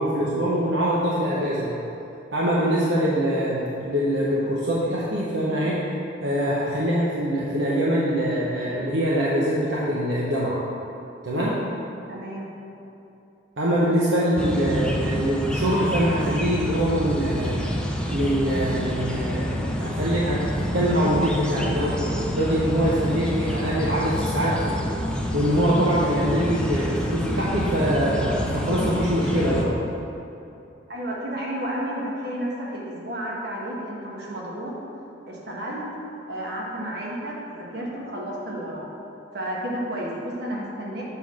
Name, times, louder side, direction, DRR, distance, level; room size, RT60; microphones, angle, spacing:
voice 1, 0.0-1.7 2.3-5.8 6.2-10.6 11.2-11.6 13.6-17.6 18.1-24.8 25.3-29.7, equal, 75° right, -7 dB, 0.9 m, -23 dB
voice 2, 12.1-12.5 30.9-34.8 35.3-35.9 36.3-38.9 39.3-41.0, right 1 dB, 60° right, -4 dB, 1.4 m, -31 dB
sound 1, 14.4-29.6, equal, 5° left, 0.6 m, -28 dB
6.8 x 3.7 x 6.3 m, 2.8 s
head